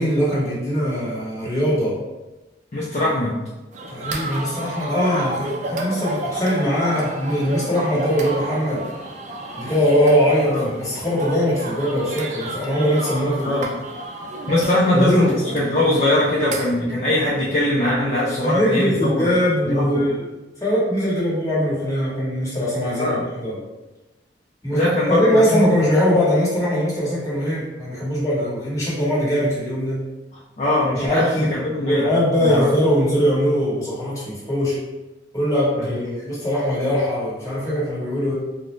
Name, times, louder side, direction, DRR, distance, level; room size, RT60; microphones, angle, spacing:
voice 1, 0.0-2.0 3.9-8.9 9.6-13.6 14.9-15.3 18.4-23.6 24.6-30.0 30.9-31.5 31.8-34.8 35.3-38.3, equal, 20° left, -8 dB, 1.2 m, -21 dB
voice 2, 2.7-3.4 10.5-10.7 13.4-13.7 14.5-19.3 19.7-20.1 22.9-23.2 24.7-25.3 25.5-25.6 30.6-32.1 32.4-32.7 35.8-36.0, left 1 dB, 35° left, -7 dB, 0.5 m, -21 dB
sound 1, 3.7-16.8, right 2 dB, 40° right, 0.4 m, -31 dB
3.8 x 2.1 x 3.0 m, 1.1 s
head